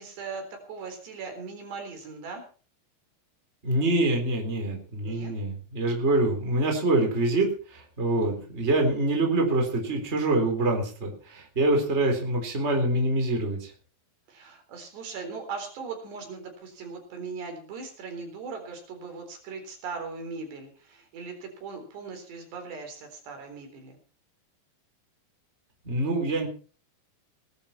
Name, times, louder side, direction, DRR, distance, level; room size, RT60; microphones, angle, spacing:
voice 1, 0.0-2.4 5.0-5.3 8.1-8.5 14.3-24.0, right 4 dB, 70° right, 4 dB, 6.0 m, -39 dB
voice 2, 3.6-13.7 25.8-26.5, right 2 dB, 15° right, 3 dB, 3.6 m, -25 dB
19.5 x 11.5 x 4.5 m, 0.39 s
omnidirectional pair, 5.0 m